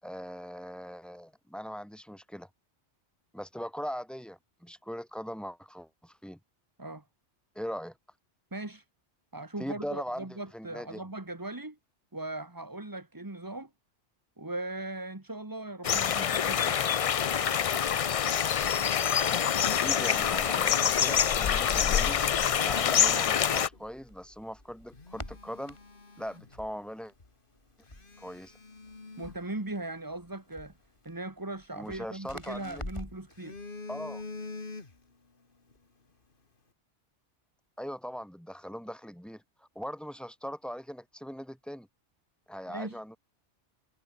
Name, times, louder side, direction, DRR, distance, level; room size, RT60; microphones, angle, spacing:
voice 1, 0.0-2.5 3.3-6.4 7.5-8.0 9.6-11.0 19.7-22.2 22.6-25.8 26.2-27.1 28.2-28.6 31.8-32.8 33.9-34.2 37.8-41.9 42.5-43.2, equal, ahead, 6.3 m, -40 dB
voice 2, 8.5-8.8 9.3-11.8 12.1-13.7 14.4-16.8 29.2-30.7 31.1-33.6 42.7-43.0, right 2 dB, 15° right, 1.7 m, -39 dB
sound 1, 15.8-23.7, left 8 dB, 65° left, 0.3 m, -26 dB
Telephone, 17.4-19.9 21.2-23.1 23.7-23.9 24.4-24.5 24.9-26.9 27.2-27.3 27.8-30.2 31.7-32.7 33.1-35.3 35.5-35.8, left 3 dB, 45° left, 2.4 m, -47 dB
Crackle, 21.8-33.3, left 1 dB, 25° left, 4.5 m, -48 dB
omnidirectional pair, 1.2 m